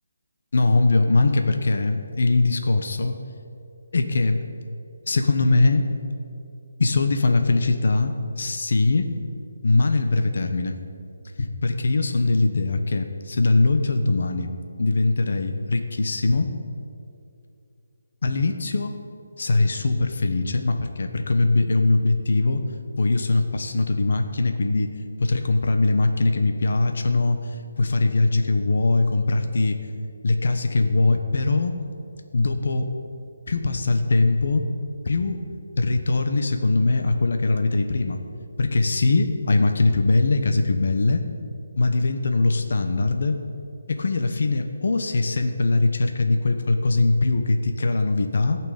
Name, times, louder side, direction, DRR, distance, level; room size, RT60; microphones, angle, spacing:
voice 1, 0.5-3.2 3.9-4.4 5.1-5.9 6.8-9.1 9.6-10.8 11.4-14.5 14.8-16.5 18.2-19.0 19.4-22.6 23.0-24.9 25.2-29.8 30.2-31.7 32.3-32.9 33.5-34.7 35.0-35.4 35.8-38.2 38.6-41.2 41.8-43.4 43.9-48.6, left 3 dB, 55° left, 6 dB, 1.1 m, -21 dB
16.5 x 6.1 x 8.8 m, 2.6 s
hypercardioid pair, 170°, 0 cm